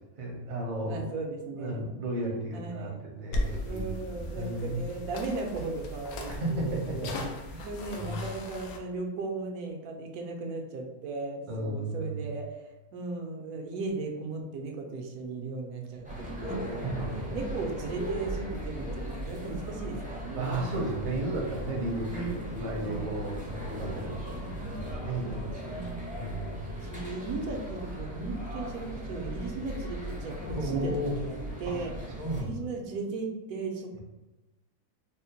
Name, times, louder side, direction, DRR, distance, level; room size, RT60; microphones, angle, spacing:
voice 1, 0.2-1.0 1.6-4.8 6.3-8.2 11.5-12.3 16.7-17.4 20.3-25.9 26.1-26.7 30.6-31.1 31.7-31.8 32.2-32.7, right 2 dB, 45° right, -1 dB, 0.6 m, -34 dB
voice 2, 0.8-2.0 2.5-3.0 3.6-7.1 7.6-12.5 12.9-17.0 17.3-20.6 22.1-22.4 22.8-23.1 24.4-24.9 25.7-26.3 26.8-30.9 31.2-31.9 32.4-34.0, right 3 dB, 85° right, 2 dB, 1.1 m, -37 dB
sound 1, 3.3-8.8, left 1 dB, 75° left, 1.0 m, -37 dB
sound 2, 16.0-32.4, equal, 15° right, 0.3 m, -38 dB
4.2 x 2.0 x 2.8 m, 1.1 s
omnidirectional pair, 1.6 m